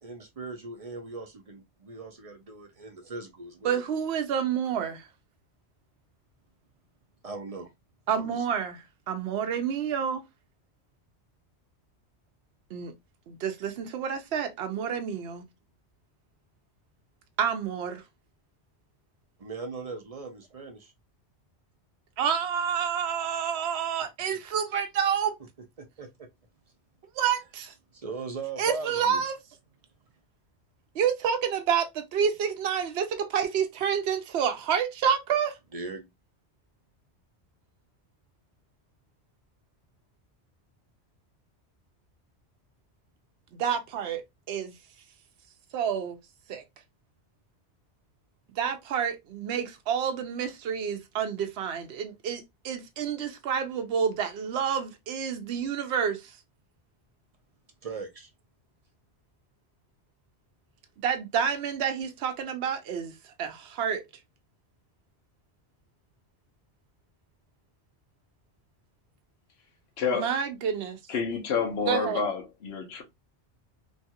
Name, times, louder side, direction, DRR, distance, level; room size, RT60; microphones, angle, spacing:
voice 1, 0.0-3.8 7.2-7.7 8.1-8.5 19.4-20.9 25.8-26.3 27.9-29.2 35.7-36.1 57.8-58.3, right 3 dB, 40° right, 0.6 m, -39 dB
voice 2, 3.6-5.1 8.1-10.2 12.7-12.9 13.3-15.4 17.4-18.0 22.2-25.4 27.2-27.7 28.6-29.3 30.9-35.6 43.5-44.7 45.7-46.2 46.5-46.6 48.6-56.2 61.0-63.1 63.4-64.0 70.1-71.0 71.9-72.2, right 7 dB, 70° right, 0.9 m, -29 dB
voice 3, 70.0-70.3 71.1-73.0, left 5 dB, 65° left, 1.0 m, -29 dB
3.0 x 2.3 x 2.7 m
omnidirectional pair, 1.2 m